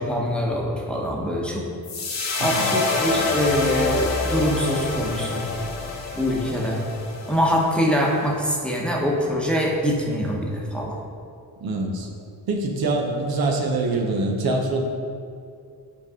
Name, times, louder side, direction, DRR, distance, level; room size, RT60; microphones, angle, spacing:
voice 1, 0.0-1.7 2.4-5.4 6.2-6.8 7.3-11.0, equal, 5° left, -3 dB, 1.1 m, -24 dB
sound 1, 1.8-8.2, left 3 dB, 45° left, 1.1 m, -27 dB
voice 2, 11.6-12.1 12.5-14.8, right 2 dB, 65° right, 1 dB, 1.0 m, -24 dB
7.2 x 5.1 x 3.7 m, 2.3 s
cardioid pair, 90°, 40 cm